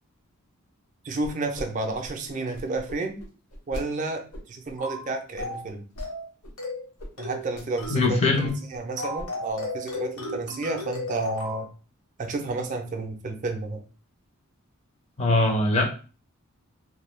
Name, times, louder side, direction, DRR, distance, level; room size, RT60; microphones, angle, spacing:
voice 1, 1.0-3.2 3.7-5.9 7.2-8.3 8.7-11.7 12.2-13.8, right 2 dB, 35° right, 4 dB, 0.4 m, -31 dB
sound 1, 1.2-1.7 1.9-3.8 4.3-4.7 5.4-6.1 6.4-6.5 7.0-7.1 7.4-8.0 8.3-8.8 9.2-9.5, equal, 90° left, 0.8 m, -40 dB
sound 2, 4.8-5.0 5.4-5.7 6.0-6.3 6.6-6.9 7.2-7.5 7.8-8.0 8.4-8.6 9.0-11.6, left 1 dB, 70° left, 1.0 m, -34 dB
voice 2, 7.9-8.5 15.2-15.8, left 2 dB, 30° left, 2 dB, 0.5 m, -21 dB
2.2 x 2.1 x 3.0 m, 0.36 s
head